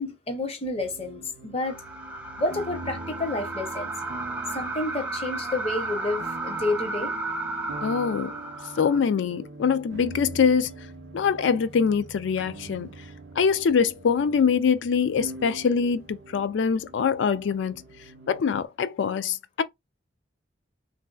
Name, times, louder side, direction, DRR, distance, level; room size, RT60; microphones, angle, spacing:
voice 1, 0.0-1.8 2.4-3.9 4.5-7.1, left 2 dB, 30° left, 0.7 m, -30 dB
sound 1, 0.8-18.7, right 2 dB, 75° right, 0.5 m, -43 dB
sound 2, 1.6-9.0, right 3 dB, 5° right, 0.3 m, -33 dB
voice 2, 7.8-8.3 8.8-10.8 11.1-12.9 13.4-17.8 18.3-19.6, left 6 dB, 75° left, 0.3 m, -24 dB
3.1 x 2.6 x 2.3 m
head